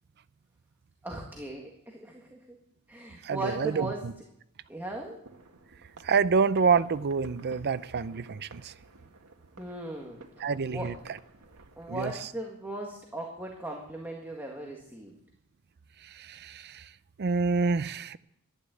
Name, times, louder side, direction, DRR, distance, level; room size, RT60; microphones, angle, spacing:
voice 1, 1.0-2.6 2.9-4.0 4.7-5.2 9.6-10.9 11.8-15.1, right 1 dB, 10° right, 1.8 m, -38 dB
voice 2, 3.2-4.1 6.0-8.7 10.4-10.9 11.9-12.1 16.0-16.9 17.2-18.2, right 5 dB, 50° right, 0.5 m, -27 dB
sound 1, 5.2-11.9, right 3 dB, 80° right, 1.8 m, -53 dB
12.0 x 11.5 x 8.3 m
head